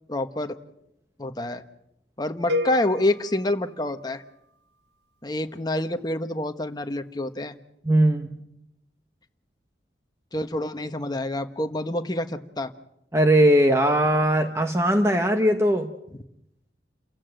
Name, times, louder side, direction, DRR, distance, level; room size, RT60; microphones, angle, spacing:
voice 1, 0.1-0.6 1.2-1.6 2.2-4.2 5.2-7.5 10.3-12.7, left 1 dB, 25° left, 7 dB, 1.2 m, -27 dB
sound 1, 2.5-4.6, left 2 dB, 75° right, 1.7 m, -32 dB
voice 2, 7.8-8.3 13.1-15.9, right 1 dB, 15° right, 5 dB, 1.0 m, -20 dB
29.0 x 16.0 x 7.8 m, 0.83 s
head